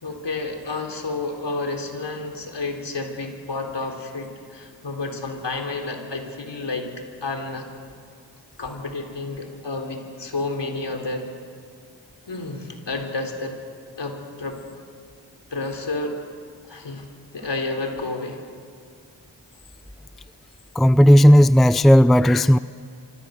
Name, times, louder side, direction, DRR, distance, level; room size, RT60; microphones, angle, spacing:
voice 1, 0.0-6.9 7.2-7.7 8.6-11.3 12.3-13.6 14.0-14.6 15.5-16.2 16.6-17.1 17.3-18.4, left 3 dB, 65° left, 4 dB, 3.9 m, -30 dB
voice 2, 20.8-22.6, equal, ahead, 15 dB, 0.5 m, -13 dB
26.0 x 25.0 x 6.6 m, 2.2 s
cardioid pair, 40°, 46 cm